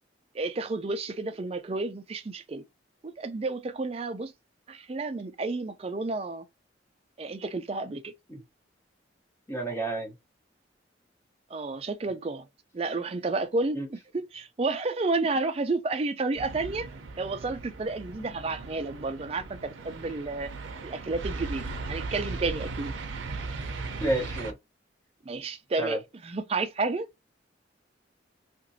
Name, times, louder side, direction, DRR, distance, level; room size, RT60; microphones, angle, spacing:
voice 1, 0.3-2.7 3.0-4.3 4.7-6.4 7.2-8.1 11.5-12.5 12.7-16.9 17.2-20.5 20.8-22.9 25.3-27.1, right 3 dB, 30° right, 0.4 m, -31 dB
voice 2, 9.5-10.1 13.7-13.9 18.2-18.3 24.0-24.5 25.8-26.0, right 2 dB, 15° left, 0.9 m, -30 dB
sound 1, 16.3-24.5, right 3 dB, 90° right, 0.5 m, -37 dB
2.9 x 2.6 x 2.7 m
head